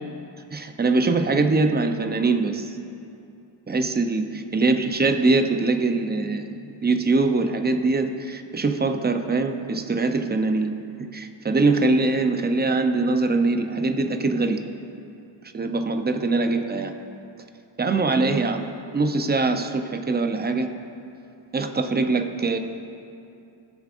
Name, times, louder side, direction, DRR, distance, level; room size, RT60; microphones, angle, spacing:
voice 1, 0.5-2.8 3.7-4.3 4.5-6.5 6.8-10.8 11.1-14.7 15.5-16.9 17.8-20.7 21.5-22.6, right 3 dB, 25° right, 7 dB, 0.5 m, -22 dB
19.0 x 7.1 x 2.5 m, 2.6 s
wide cardioid pair, 125°, 44 cm